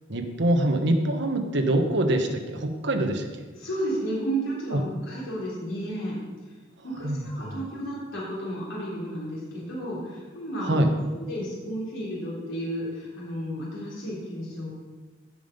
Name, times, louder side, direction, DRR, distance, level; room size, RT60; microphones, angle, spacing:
voice 1, 0.1-3.3 4.7-4.8 7.0-7.6 10.6-10.9, right 1 dB, 65° right, 5 dB, 1.3 m, -24 dB
voice 2, 3.5-6.2 6.8-10.8 11.1-14.7, right 1 dB, 85° left, -6 dB, 3.8 m, -32 dB
16.0 x 5.8 x 5.3 m, 1.3 s
head